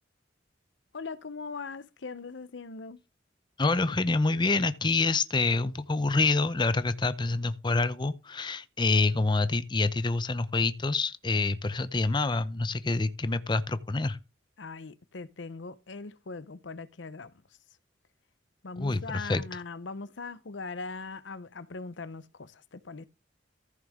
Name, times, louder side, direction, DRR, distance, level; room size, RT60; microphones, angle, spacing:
voice 1, 0.9-3.0 14.6-17.3 18.6-23.1, left 4 dB, 75° left, 0.8 m, -40 dB
voice 2, 3.6-14.2 18.8-19.4, left 3 dB, 25° left, 0.6 m, -27 dB
14.5 x 6.3 x 3.6 m
head